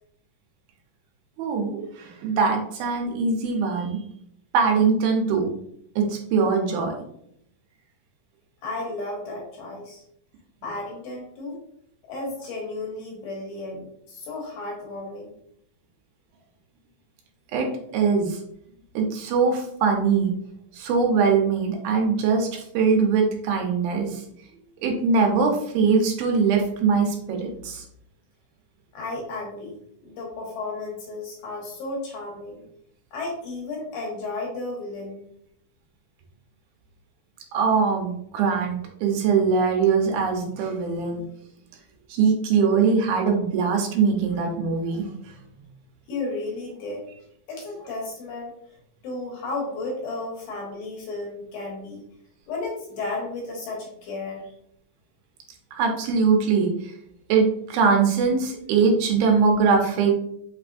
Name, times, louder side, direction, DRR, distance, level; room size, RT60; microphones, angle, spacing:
voice 1, 1.4-4.0 4.5-5.5 6.0-6.9 17.5-17.7 17.9-18.4 18.9-20.3 20.7-24.2 24.8-27.8 37.5-41.2 42.1-45.1 55.7-56.9 57.3-60.1, right 5 dB, 85° right, 2 dB, 2.7 m, -22 dB
voice 2, 8.6-10.0 10.6-11.6 12.1-15.3 28.9-29.8 30.0-32.6 33.1-35.2 46.1-47.1 47.5-48.5 49.0-52.0 52.5-54.5, left 2 dB, 70° left, -2 dB, 2.2 m, -33 dB
5.7 x 3.5 x 2.5 m, 0.72 s
omnidirectional pair, 4.2 m